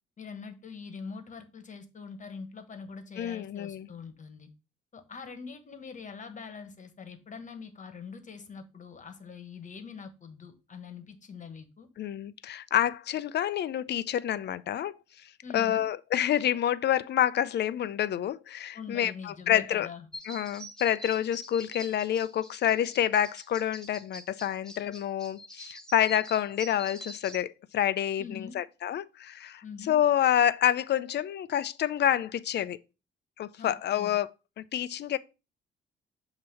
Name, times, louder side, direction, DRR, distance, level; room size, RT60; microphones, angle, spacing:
voice 1, 0.2-4.5 4.9-11.9 15.4-15.9 18.7-20.1 28.2-28.6 29.6-30.0 33.6-34.2, left 5 dB, 40° left, 1.4 m, -43 dB
voice 2, 3.2-3.9 12.0-15.0 15.5-19.9 20.3-32.8 33.4-34.3 34.6-35.2, left 10 dB, 60° left, 0.5 m, -28 dB
sound 1, 20.1-27.4, equal, 5° left, 1.3 m, -45 dB
7.6 x 2.9 x 5.5 m
cardioid pair, 90°, 20 cm